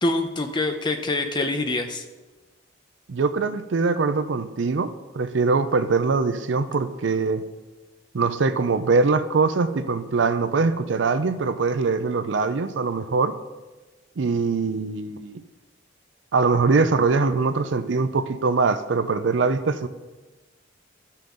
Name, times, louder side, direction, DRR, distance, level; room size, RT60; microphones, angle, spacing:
voice 1, 0.0-2.0, left 2 dB, 25° left, 5 dB, 0.7 m, -25 dB
voice 2, 3.1-7.4 8.1-13.3 14.2-15.4 16.3-19.9, right 4 dB, 65° right, 11 dB, 0.5 m, -22 dB
12.5 x 5.6 x 3.8 m, 1.2 s
head